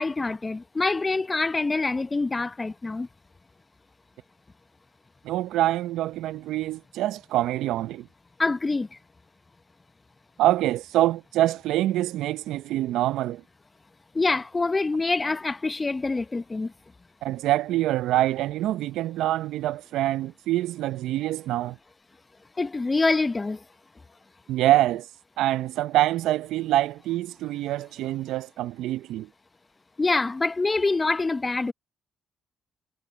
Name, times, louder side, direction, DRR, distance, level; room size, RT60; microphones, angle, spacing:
voice 1, 0.0-3.1 8.4-8.9 14.1-16.7 22.6-23.6 30.0-31.7, left 3 dB, 30° left, 1.0 m, -25 dB
voice 2, 5.2-8.1 10.4-13.4 17.2-21.8 24.5-25.1 25.4-29.3, right 14 dB, 75° right, 0.7 m, -25 dB
hypercardioid pair, 50°, 0 cm